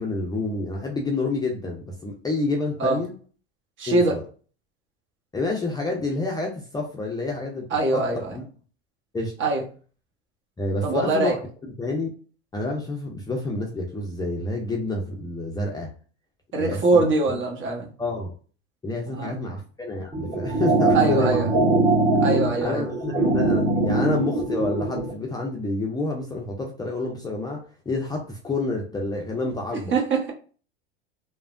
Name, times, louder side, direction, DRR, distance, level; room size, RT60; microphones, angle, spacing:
voice 1, 0.0-3.2 3.9-4.2 5.3-8.0 8.3-8.5 9.1-9.4 10.6-11.4 11.8-12.1 12.5-15.9 16.6-17.3 18.0-18.3 18.8-21.5 22.6-29.9, left 2 dB, 10° left, -1 dB, 0.5 m, -29 dB
voice 2, 3.8-4.1 7.7-8.3 9.4-9.6 10.8-11.4 16.5-17.9 19.1-19.4 20.9-21.5 22.2-22.8 29.9-30.3, right 3 dB, 40° right, 0 dB, 1.1 m, -22 dB
sound 1, 20.1-25.1, right 2 dB, 15° right, 1.4 m, -22 dB
3.2 x 2.1 x 2.5 m, 0.40 s
hypercardioid pair, 100°, 32 cm